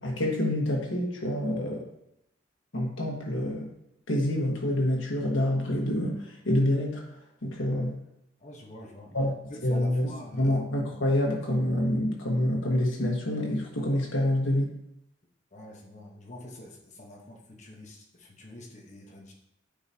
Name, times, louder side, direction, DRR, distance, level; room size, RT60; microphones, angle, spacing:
voice 1, 0.0-1.9 2.7-3.7 4.1-7.0 7.4-8.0 9.1-9.3 9.6-14.8, left 1 dB, 75° left, -1 dB, 1.6 m, -27 dB
voice 2, 8.4-9.1 9.7-10.6 15.5-19.3, left 1 dB, 35° left, -1 dB, 1.2 m, -45 dB
8.9 x 5.0 x 2.9 m, 0.82 s
head